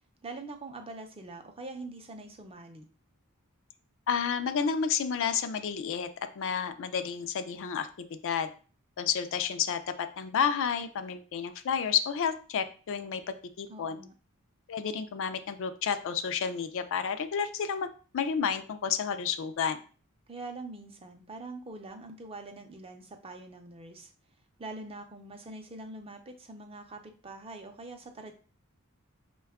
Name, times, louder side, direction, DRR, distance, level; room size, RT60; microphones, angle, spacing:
voice 1, 0.2-2.9 13.7-14.1 20.3-24.1 24.6-28.3, right 2 dB, 25° right, 5 dB, 0.6 m, -44 dB
voice 2, 4.1-6.1 6.4-8.5 9.0-14.0 14.7-17.9 18.1-19.8, left 7 dB, 60° left, 10 dB, 0.4 m, -31 dB
5.2 x 2.3 x 3.5 m, 0.39 s
head